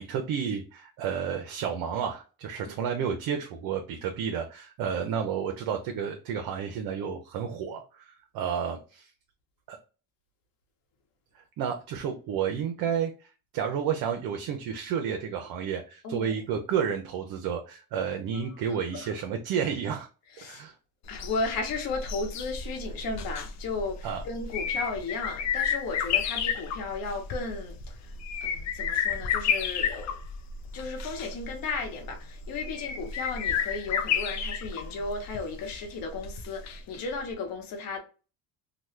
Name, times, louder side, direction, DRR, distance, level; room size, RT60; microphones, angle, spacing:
voice 1, 0.0-9.1 9.7-9.8 11.3-20.1 20.4-20.8 24.0-24.2, right 7 dB, 75° right, 0.6 m, -31 dB
voice 2, 16.0-16.4 18.3-18.5 18.9-19.1 20.3-20.6 21.1-28.1 28.4-30.2 30.7-38.0, left 4 dB, 70° left, 1.0 m, -35 dB
sound 1, 21.1-37.0 37.3-37.4, left 7 dB, 50° left, 0.5 m, -32 dB
2.9 x 2.1 x 3.1 m
cardioid pair, 105°, 36 cm